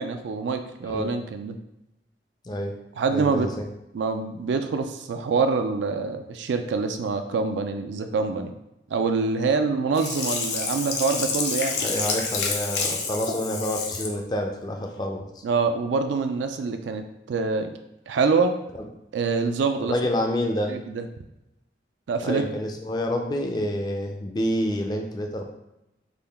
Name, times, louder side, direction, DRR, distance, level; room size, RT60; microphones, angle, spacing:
voice 1, 0.0-1.6 3.0-3.5 3.9-8.5 8.9-11.8 15.4-17.7 18.1-18.5 19.1-20.0 20.7-21.0 22.1-22.4, right 4 dB, 85° right, 7 dB, 0.3 m, -25 dB
voice 2, 2.4-2.7 3.1-3.7 11.8-15.3 19.8-20.7 22.2-25.4, equal, 25° left, 3 dB, 0.3 m, -28 dB
Sink (filling or washing), 10.0-14.2 14.6-14.7, left 4 dB, 70° left, 0.6 m, -28 dB
3.6 x 2.2 x 3.4 m, 0.90 s
head